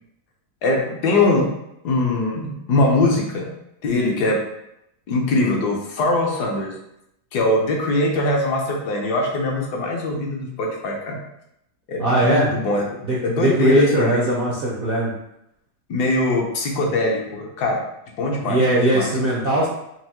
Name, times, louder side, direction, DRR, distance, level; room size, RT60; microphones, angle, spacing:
voice 1, 0.6-1.5 1.8-3.5 3.8-4.4 5.1-6.7 7.3-11.2 11.9-12.8 13.2-14.4 15.9-17.8 18.2-19.1, left 2 dB, 70° left, -1 dB, 1.3 m, -22 dB
voice 2, 12.0-12.5 13.0-15.1 18.4-19.7, right 1 dB, 55° right, -6 dB, 0.6 m, -19 dB
4.7 x 2.6 x 2.8 m, 0.80 s
omnidirectional pair, 1.9 m